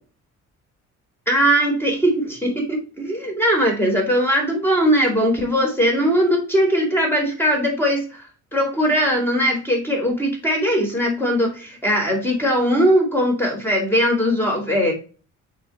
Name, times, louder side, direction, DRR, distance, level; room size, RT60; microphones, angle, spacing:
voice 1, 1.3-8.2 8.5-14.9, equal, 5° left, 1 dB, 3.8 m, -20 dB
6.7 x 4.6 x 4.3 m, 0.36 s
cardioid pair, 90°, 30 cm